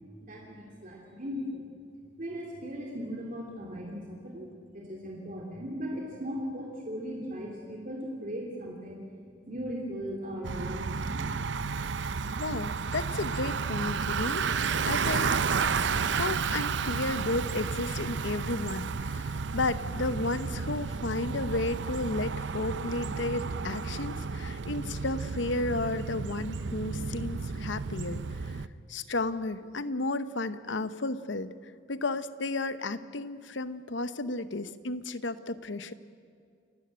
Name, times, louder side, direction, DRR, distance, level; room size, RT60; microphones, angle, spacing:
voice 1, 0.2-1.7 2.2-9.0 9.5-11.2, equal, 45° right, -1 dB, 2.9 m, -38 dB
Bicycle, 10.4-28.7, right 5 dB, 65° right, 0.6 m, -32 dB
voice 2, 12.4-15.7 16.1-28.2 28.5-28.6 28.9-31.5 31.9-35.9, left 2 dB, 65° left, 13 dB, 0.9 m, -33 dB
29.5 x 13.5 x 8.9 m, 2.2 s
head